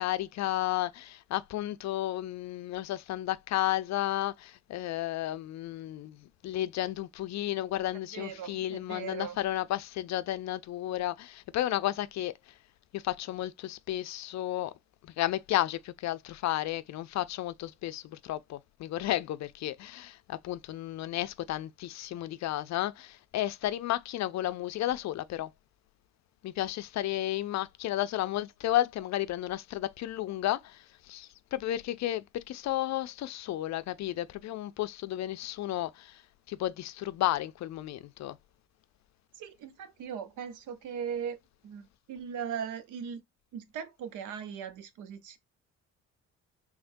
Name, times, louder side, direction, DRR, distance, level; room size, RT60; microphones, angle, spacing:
voice 1, 0.0-12.5 12.9-14.7 15.0-25.5 26.4-36.2 36.5-38.4, left 14 dB, 65° left, 0.4 m, -33 dB
voice 2, 8.1-9.4 39.3-41.4 41.6-43.2 43.5-45.4, right 7 dB, 85° right, 0.7 m, -39 dB
3.6 x 3.2 x 2.5 m
cardioid pair, 90°, 30 cm